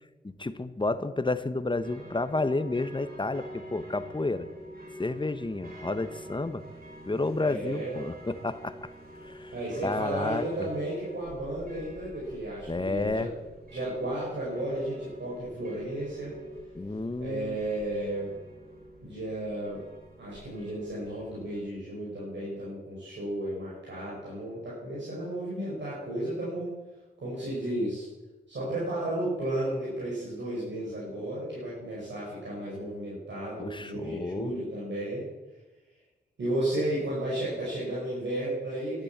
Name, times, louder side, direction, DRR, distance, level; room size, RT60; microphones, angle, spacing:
voice 1, 0.2-4.5 5.0-6.6 7.1-8.9 9.2-9.5 9.8-10.7 12.7-13.3 16.7-17.6 33.6-34.5, left 2 dB, 25° left, 12 dB, 1.1 m, -31 dB
sound 1, 1.8-21.6, equal, 55° right, 4.1 m, -46 dB
voice 2, 7.4-7.9 9.5-13.3 13.7-16.4 17.2-18.3 19.0-19.8 20.2-26.7 27.2-28.1 28.5-35.3 36.4-39.0, right 1 dB, 80° right, -7 dB, 5.7 m, -33 dB
12.0 x 10.0 x 8.1 m, 1.1 s
cardioid pair, 50°, 19 cm